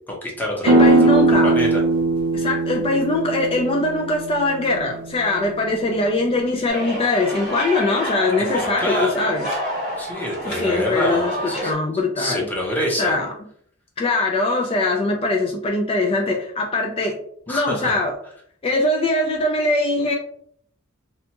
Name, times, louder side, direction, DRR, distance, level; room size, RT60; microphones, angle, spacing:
voice 1, 0.1-1.8 8.6-9.3 10.0-11.7 12.2-13.1 17.5-17.9, equal, 10° left, -2 dB, 0.7 m, -26 dB
voice 2, 0.6-1.6 2.3-9.5 10.4-12.5 13.0-13.3 14.0-17.2 17.5-18.1 18.6-20.1, left 2 dB, 25° left, 1 dB, 0.3 m, -22 dB
sound 1, 0.6-6.2, right 2 dB, 85° right, 0.5 m, -20 dB
sound 2, 6.7-11.7, equal, 50° left, 1.4 m, -28 dB
2.7 x 2.2 x 2.8 m, 0.63 s
head